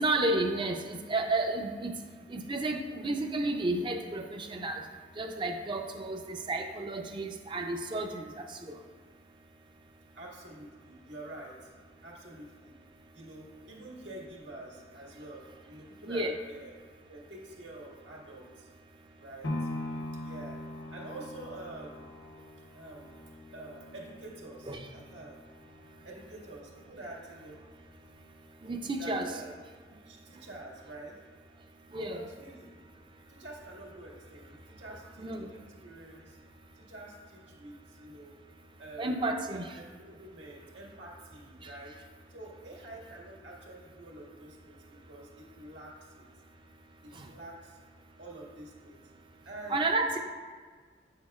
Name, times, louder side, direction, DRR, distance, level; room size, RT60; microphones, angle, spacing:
voice 1, 0.0-1.9 2.3-4.8 5.2-8.2 8.5-8.6 16.1-16.4 24.7-24.9 28.6-29.3 31.9-32.2 35.2-35.5 39.0-39.7 47.2-47.3 49.7-50.2, right 2 dB, 25° right, 4 dB, 0.5 m, -31 dB
voice 2, 10.1-11.7 12.0-12.7 13.1-16.8 17.1-18.7 19.2-19.7 20.2-20.6 20.9-22.1 22.7-23.1 23.5-25.4 26.0-27.6 29.0-29.6 30.0-31.1 32.1-32.7 33.3-36.4 36.8-38.3 38.8-41.9 42.3-44.8 45.1-46.2 47.0-47.8 48.2-49.0 49.4-49.8, right 2 dB, 85° right, -3 dB, 1.8 m, -47 dB
sound 1, 19.4-27.5 28.0-28.1, left 1 dB, 90° left, 0.8 m, -42 dB
8.8 x 6.4 x 2.4 m, 1.5 s
head